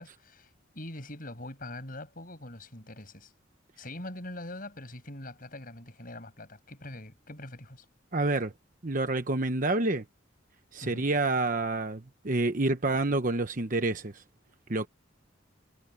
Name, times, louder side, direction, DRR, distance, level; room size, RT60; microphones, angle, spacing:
voice 1, 0.0-3.3 3.8-7.9 10.8-11.0, left 1 dB, 45° left, 6.3 m, -43 dB
voice 2, 8.1-8.5 8.8-10.0 10.7-14.2 14.7-14.9, right 2 dB, 45° right, 1.0 m, -28 dB
head